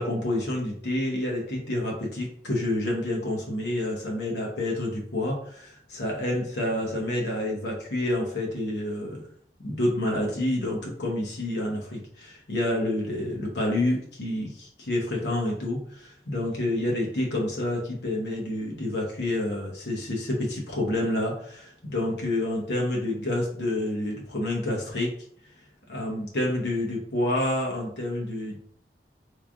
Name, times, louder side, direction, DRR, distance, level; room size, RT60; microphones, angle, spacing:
voice 1, 0.0-9.3 9.6-25.1 25.9-28.6, left 1 dB, 75° left, -1 dB, 0.9 m, -28 dB
3.5 x 3.3 x 2.4 m, 0.64 s
head